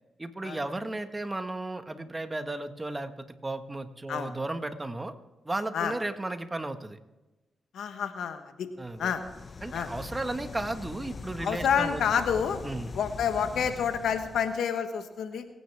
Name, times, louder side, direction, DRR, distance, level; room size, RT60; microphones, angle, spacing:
voice 1, 0.2-5.1 5.4-7.0 8.8-9.1 9.6-12.0 12.6-12.9, right 2 dB, 25° right, 8 dB, 1.6 m, -34 dB
voice 2, 7.7-8.7 9.0-9.2 9.7-9.9 11.4-12.6 12.9-15.4, left 7 dB, 80° left, 8 dB, 1.2 m, -28 dB
sound 1, 8.9-14.6, left 4 dB, 50° left, 0.9 m, -42 dB
25.0 x 10.0 x 3.6 m, 1.1 s
supercardioid pair, 45°, 0 cm